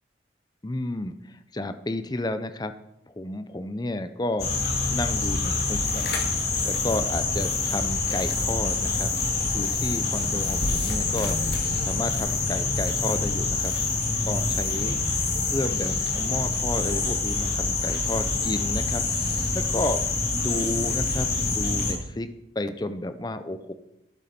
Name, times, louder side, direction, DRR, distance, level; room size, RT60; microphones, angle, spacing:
voice 1, 0.6-1.2 1.5-2.7 3.1-4.5 4.9-6.2 6.6-9.1 9.5-11.4 11.8-13.7 14.2-19.0 19.5-22.3 22.6-23.7, left 1 dB, 20° left, 11 dB, 0.6 m, -31 dB
sound 1, 4.4-21.9, left 3 dB, 60° left, 1.8 m, -26 dB
11.5 x 8.1 x 4.4 m, 0.86 s
head